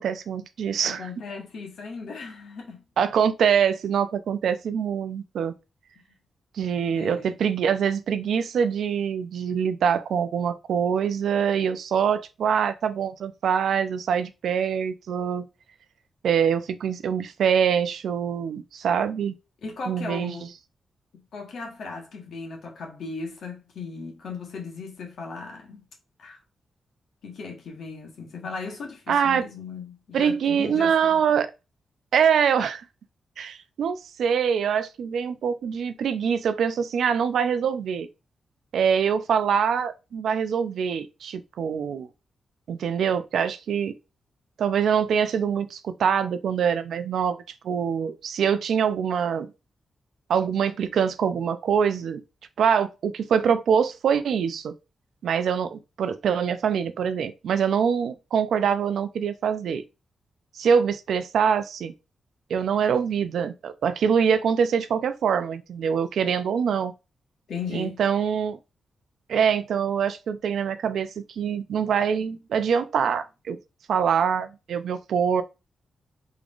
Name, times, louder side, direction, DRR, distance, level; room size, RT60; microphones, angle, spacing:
voice 1, 0.0-1.0 3.0-5.5 6.5-15.5 16.2-19.3 19.9-20.3 29.1-29.4 30.1-31.5 32.1-32.8 33.4-38.1 38.7-42.1 42.7-43.9 44.6-47.4 47.6-49.5 50.3-52.2 52.6-54.7 55.2-59.8 60.6-61.9 62.5-66.9 67.7-68.6 69.3-73.6 73.9-75.4, right 7 dB, 80° right, 0.4 m, -24 dB
voice 2, 0.8-2.8 6.0-6.1 7.0-7.5 19.6-20.5 21.1-25.8 26.2-26.4 27.2-31.2 67.5-68.0, left 4 dB, 75° left, 1.2 m, -37 dB
3.6 x 3.5 x 2.4 m
cardioid pair, 55°, 0 cm